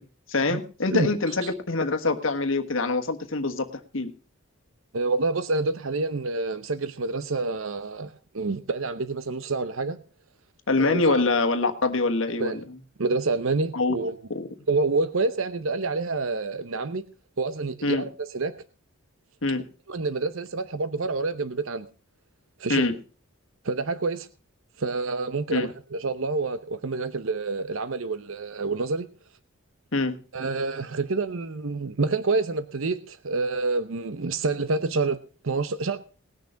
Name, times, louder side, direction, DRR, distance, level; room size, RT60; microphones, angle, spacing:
voice 1, 0.3-3.7 3.9-4.1 10.7-12.6 13.7-13.9 14.3-14.5 17.8-18.0 19.4-19.6 22.7-22.9 25.5-25.7 29.9-30.2, left 3 dB, 65° left, 7 dB, 1.4 m, -24 dB
voice 2, 4.9-10.0 10.8-11.2 12.4-12.6 13.0-14.2 14.7-17.0 17.4-18.5 19.9-21.9 22.6-22.8 23.6-24.3 24.8-29.1 30.3-35.2 35.4-36.0, right 3 dB, 70° right, 13 dB, 0.8 m, -27 dB
19.5 x 6.6 x 5.7 m, 0.36 s
head